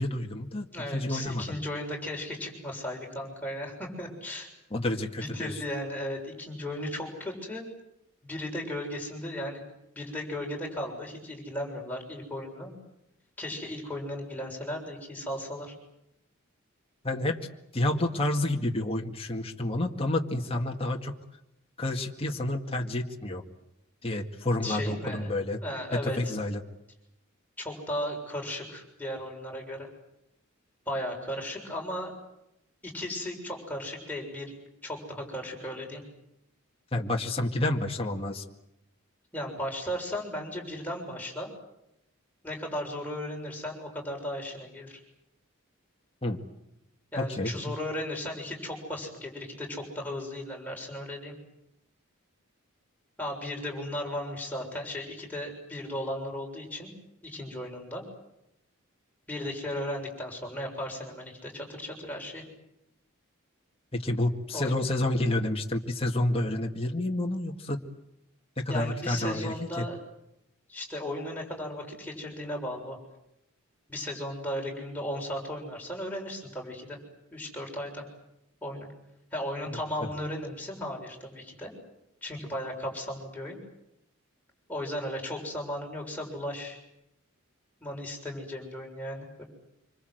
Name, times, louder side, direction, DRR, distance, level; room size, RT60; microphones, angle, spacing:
voice 1, 0.0-1.6 4.7-5.6 17.0-17.4 17.7-21.1 21.8-23.4 24.0-25.6 26.0-26.6 36.9-38.4 46.2-46.4 47.2-47.7 63.9-67.8 68.6-69.8, left 1 dB, 25° left, 1 dB, 2.0 m, -29 dB
voice 2, 0.7-4.5 5.2-7.6 8.2-9.6 9.9-12.7 13.4-15.7 24.6-25.3 25.6-26.3 27.6-29.9 30.8-32.1 32.8-34.5 34.8-36.0 39.3-41.5 42.4-45.0 47.1-51.3 53.2-56.9 57.2-58.0 59.3-62.4 64.5-64.7 68.7-70.0 70.7-73.0 73.9-77.0 77.3-78.0 78.6-78.9 79.3-81.7 82.2-83.6 84.7-86.8 87.8-89.4, left 1 dB, 10° left, -1 dB, 6.9 m, -36 dB
26.5 x 25.5 x 8.0 m, 0.84 s
head